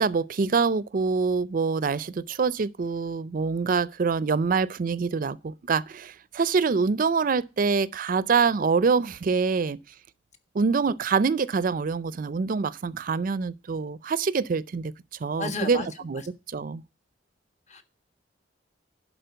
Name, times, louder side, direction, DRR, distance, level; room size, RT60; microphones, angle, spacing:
voice 1, 0.0-9.8 10.5-14.9 15.2-16.2 16.5-16.8, right 5 dB, 50° right, 0.4 m, -25 dB
voice 2, 15.4-15.9 17.7-17.8, left 3 dB, 40° left, 1.5 m, -32 dB
11.0 x 4.3 x 7.8 m
head